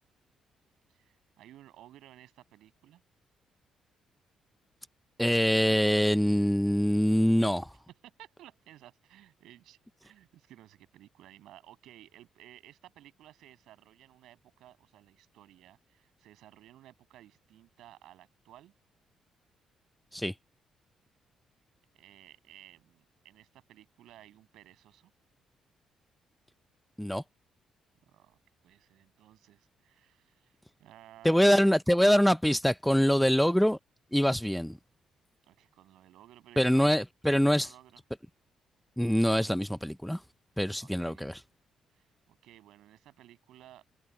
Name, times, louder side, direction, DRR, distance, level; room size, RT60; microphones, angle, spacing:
voice 1, 0.9-3.0 8.0-18.7 21.9-25.1 28.1-28.4 28.6-31.7 33.0-33.1 35.5-37.0 37.4-38.0 40.8-41.3 41.9-43.8, right 13 dB, 85° right, 7.3 m, -56 dB
voice 2, 5.2-7.7 20.1-20.3 27.0-27.2 31.2-33.8 34.1-34.8 36.6-37.7 39.0-40.2 40.6-41.4, equal, ahead, 0.5 m, -24 dB
cardioid pair, 90°, 0 cm